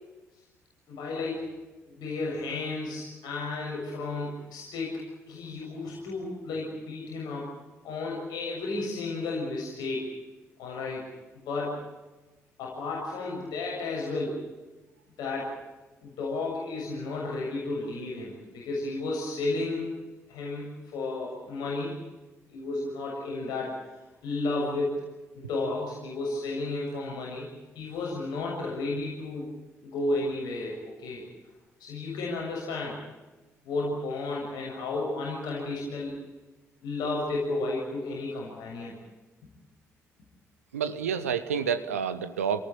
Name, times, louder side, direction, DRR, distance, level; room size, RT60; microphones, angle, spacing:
voice 1, 0.9-1.5 1.9-5.0 5.3-7.5 7.8-10.1 10.6-11.1 11.4-11.8 12.6-14.5 15.2-15.6 16.0-19.9 20.3-22.0 22.5-23.8 24.2-25.0 25.4-27.5 27.8-29.5 29.8-31.2 31.8-33.0 33.6-36.2 36.8-38.9, left 2 dB, 65° left, -3 dB, 7.0 m, -32 dB
voice 2, 40.7-42.6, right 7 dB, 80° right, 11 dB, 1.1 m, -29 dB
29.0 x 19.0 x 8.9 m, 1.1 s
figure-of-eight pair, 40°, 8 cm